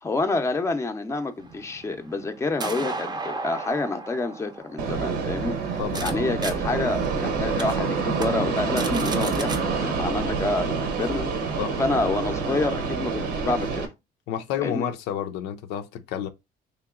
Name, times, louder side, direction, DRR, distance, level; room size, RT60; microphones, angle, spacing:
voice 1, 0.0-5.6 6.0-11.3 11.8-13.9 14.6-14.9, left 3 dB, 15° left, 0.6 m, -28 dB
sound 1, 1.4-6.1 6.4-6.5 7.0-7.1 7.6-7.7 8.1-8.3 8.6-9.6, right 3 dB, 25° right, 0.6 m, -35 dB
Fixed-wing aircraft airplane, 4.8-13.8, right 5 dB, 75° right, 0.9 m, -27 dB
voice 2, 5.8-6.3 11.6-11.7 14.3-16.3, left 10 dB, 90° left, 0.5 m, -30 dB
3.2 x 2.9 x 3.7 m
cardioid pair, 110°, 17 cm